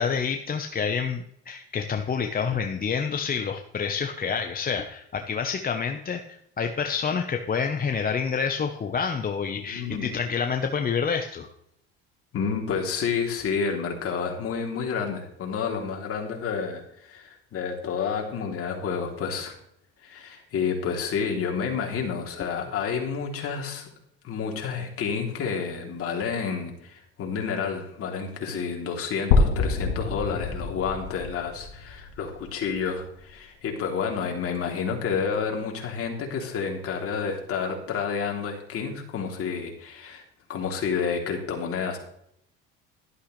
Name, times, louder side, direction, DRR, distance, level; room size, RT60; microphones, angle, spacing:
voice 1, 0.0-11.5, left 6 dB, 30° left, 5 dB, 1.1 m, -28 dB
voice 2, 9.6-10.2 12.3-19.5 20.0-23.9 24.2-40.2 40.5-42.0, left 6 dB, 45° left, 1 dB, 3.3 m, -30 dB
sound 1, 29.3-33.2, left 4 dB, 85° left, 1.6 m, -26 dB
12.0 x 11.0 x 3.3 m, 0.74 s
supercardioid pair, 95°, 31 cm